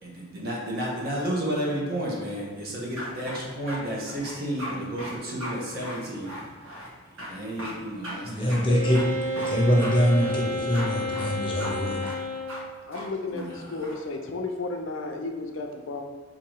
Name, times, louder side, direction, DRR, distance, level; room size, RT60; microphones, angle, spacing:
voice 1, 0.0-6.4 7.2-9.0 13.3-13.9, right 1 dB, 45° right, -3 dB, 1.0 m, -32 dB
sound 1, 3.0-3.8 4.1-4.7 5.0-5.1 5.4-5.6 5.8-6.9 7.2-7.3 7.6-7.7 8.0-8.1 8.5-8.6 8.9-9.5 9.8-9.9 10.2-10.9 11.1-11.3 11.6-11.7 12.0-12.2 12.5-12.6 12.9-13.0 13.3-14.0, equal, 80° right, 1.3 m, -37 dB
voice 2, 8.2-9.0 9.4-12.0, equal, 25° left, -3 dB, 0.7 m, -24 dB
Wind instrument woodwind instrument, 8.7-12.7, equal, 15° right, 1.1 m, -30 dB
voice 3, 12.9-16.0, left 3 dB, 70° left, 3 dB, 0.5 m, -33 dB
3.8 x 2.8 x 4.6 m, 1.4 s
head